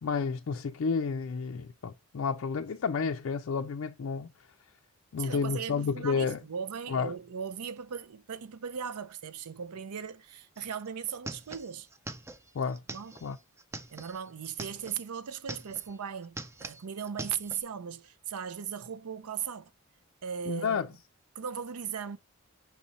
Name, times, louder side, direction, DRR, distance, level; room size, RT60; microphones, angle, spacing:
voice 1, 0.0-4.5 5.1-6.4 6.9-7.1 12.5-12.8 13.2-13.4 20.5-20.9, left 5 dB, 65° left, 0.4 m, -31 dB
voice 2, 5.2-11.9 12.9-13.1 13.9-19.7 20.2-20.8 21.4-22.2, right 7 dB, 85° right, 0.5 m, -38 dB
sound 1, 10.6-10.7 10.9-15.0 15.3-16.0 16.2-17.6, right 2 dB, 10° right, 0.3 m, -43 dB
5.8 x 4.2 x 4.0 m
head